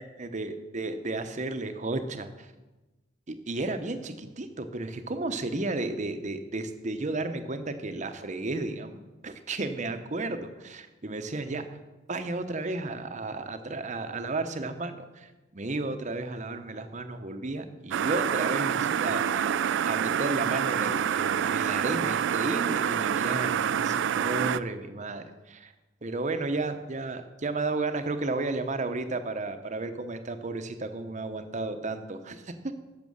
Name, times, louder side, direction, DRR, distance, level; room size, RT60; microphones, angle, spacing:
voice 1, 0.0-2.5 3.3-11.7 12.1-25.7 26.0-32.8, right 2 dB, 35° right, 9 dB, 0.8 m, -33 dB
sound 1, 17.9-24.6, right 8 dB, 60° right, 0.3 m, -27 dB
10.5 x 6.8 x 6.4 m, 1.1 s
head